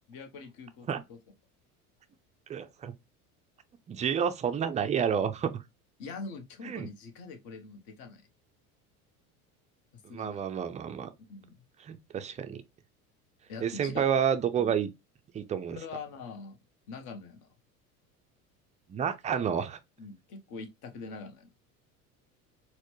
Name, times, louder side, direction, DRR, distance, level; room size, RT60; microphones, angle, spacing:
voice 1, 0.1-1.2 6.0-8.3 10.1-10.4 11.3-11.6 13.5-14.1 14.6-14.7 15.7-16.6 16.9-17.5 20.0-21.5, left 4 dB, 50° left, 1.1 m, -43 dB
voice 2, 2.5-2.9 3.9-5.6 6.6-6.9 10.0-11.1 11.8-12.6 13.6-14.9 15.3-15.8 18.9-19.8, right 8 dB, 15° right, 0.4 m, -30 dB
4.2 x 2.1 x 3.0 m
hypercardioid pair, 75°, 45 cm